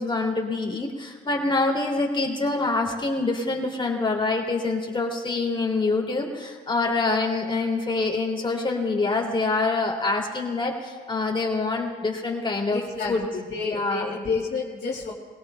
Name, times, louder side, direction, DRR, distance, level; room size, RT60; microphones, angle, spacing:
voice 1, 0.0-12.8 13.1-13.2 13.6-14.1, left 3 dB, 25° left, 1 dB, 2.6 m, -25 dB
voice 2, 12.7-15.1, left 4 dB, 55° left, -5 dB, 2.2 m, -30 dB
22.0 x 17.0 x 2.2 m, 1.5 s
cardioid pair, 90°, 20 cm